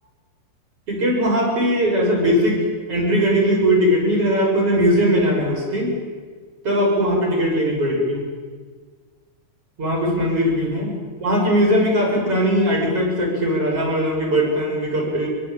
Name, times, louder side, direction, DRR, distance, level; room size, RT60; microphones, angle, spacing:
voice 1, 0.9-6.0 6.6-8.2 9.8-10.9 11.2-15.3, equal, 25° right, -1 dB, 8.4 m, -19 dB
25.5 x 23.0 x 9.1 m, 1.5 s
omnidirectional pair, 5.7 m